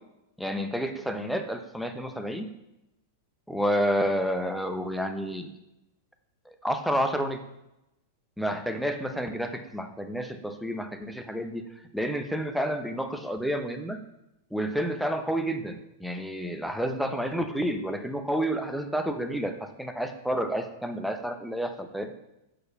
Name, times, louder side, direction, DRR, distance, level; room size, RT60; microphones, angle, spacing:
voice 1, 0.4-2.5 3.5-5.5 6.5-7.4 8.4-14.0 14.5-22.1, equal, ahead, 6 dB, 0.8 m, -30 dB
6.6 x 4.5 x 5.6 m, 0.90 s
figure-of-eight pair, 95°, 0 cm